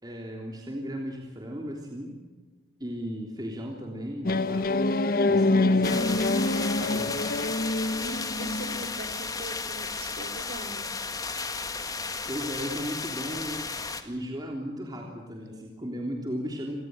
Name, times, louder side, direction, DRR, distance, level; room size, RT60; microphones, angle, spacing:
voice 1, 0.0-2.2 2.8-5.0 5.3-6.3 6.5-7.1 12.3-13.7 14.0-16.7, equal, 25° right, 1 dB, 3.4 m, -36 dB
sound 1, 4.2-8.9, left 2 dB, 55° left, 1.1 m, -25 dB
sound 2, 5.8-14.0, left 4 dB, 20° left, 1.9 m, -34 dB
voice 2, 8.0-10.8, right 1 dB, 65° right, 7 dB, 3.5 m, -41 dB
27.5 x 18.5 x 7.9 m, 1.3 s
head